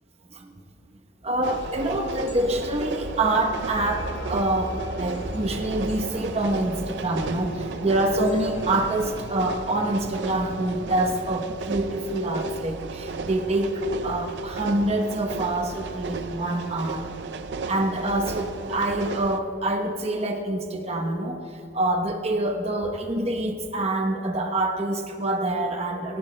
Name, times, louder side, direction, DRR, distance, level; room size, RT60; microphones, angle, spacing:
voice 1, 1.2-17.0 17.7-26.2, right 1 dB, 35° right, 3 dB, 0.9 m, -26 dB
sound 1, 1.4-19.4, right 4 dB, 80° right, 0.5 m, -35 dB
sound 2, 1.5-11.3, left 1 dB, 75° left, 1.6 m, -39 dB
18.0 x 16.5 x 2.2 m, 2.6 s
head